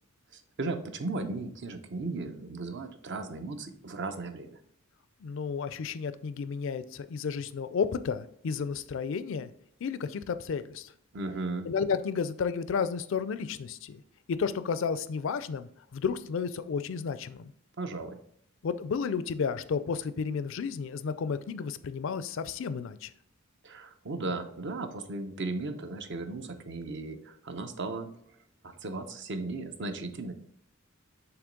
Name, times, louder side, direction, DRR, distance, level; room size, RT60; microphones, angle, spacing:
voice 1, 0.3-4.6 11.1-11.7 17.8-18.2 23.6-28.4 28.6-30.3, right 3 dB, 55° right, 7 dB, 0.7 m, -36 dB
voice 2, 5.2-9.5 9.8-10.9 11.6-14.0 14.3-17.5 18.6-23.1, left 6 dB, 65° left, 13 dB, 0.4 m, -32 dB
7.0 x 3.0 x 5.1 m, 0.67 s
head